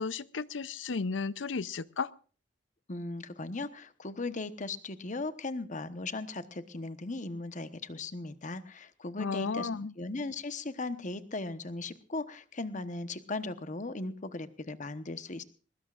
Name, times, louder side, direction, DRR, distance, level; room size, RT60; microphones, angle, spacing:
voice 1, 0.0-2.1 9.2-9.9, left 4 dB, 80° left, 17 dB, 0.7 m, -33 dB
voice 2, 2.9-9.7 10.0-15.4, left 2 dB, 40° left, 11 dB, 1.1 m, -38 dB
22.0 x 20.0 x 2.5 m, 0.38 s
head